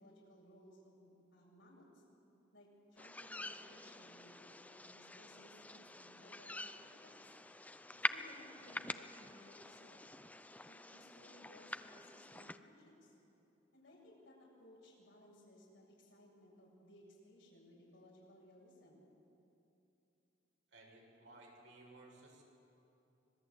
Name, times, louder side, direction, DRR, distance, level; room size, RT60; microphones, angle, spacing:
voice 1, 0.0-2.0 2.5-7.3 8.1-10.0 10.6-13.2 13.7-19.0, left 1 dB, 70° left, -3 dB, 7.5 m, -61 dB
sound 1, 3.0-12.6, left 2 dB, 10° left, 0.5 m, -46 dB
voice 2, 20.7-22.4, right 2 dB, 75° right, -1 dB, 6.4 m, -58 dB
25.5 x 20.0 x 8.4 m, 2.8 s
head